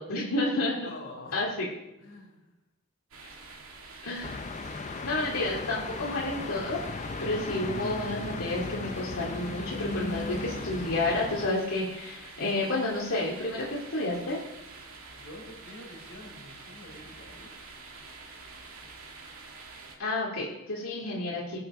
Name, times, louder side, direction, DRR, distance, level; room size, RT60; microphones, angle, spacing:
voice 1, 0.0-0.7 1.3-1.7 4.0-4.3 5.0-14.4 20.0-21.6, left 2 dB, 85° left, -5 dB, 2.4 m, -30 dB
voice 2, 0.8-1.5 2.0-2.4 15.2-17.5, left 1 dB, 65° left, -3 dB, 4.9 m, -46 dB
sound 1, 3.1-20.0, right 3 dB, 80° right, 2.2 m, -47 dB
sound 2, 4.2-11.5, left 3 dB, 30° left, 0.5 m, -36 dB
20.0 x 7.8 x 3.7 m, 0.98 s
head